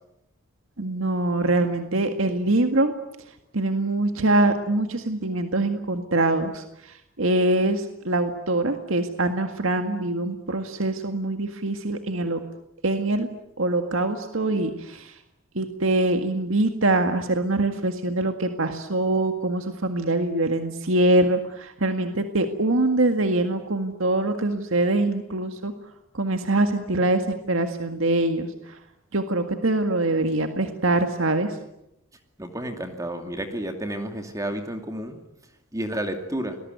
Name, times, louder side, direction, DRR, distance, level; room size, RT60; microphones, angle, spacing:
voice 1, 0.8-2.9 3.5-12.4 12.8-13.3 13.6-15.2 15.6-25.7 26.1-28.8 29.1-31.6, right 2 dB, 70° right, 6 dB, 1.9 m, -24 dB
voice 2, 32.4-35.2 35.7-36.6, right 1 dB, 15° right, 5 dB, 2.5 m, -31 dB
29.0 x 21.0 x 9.4 m, 0.83 s
head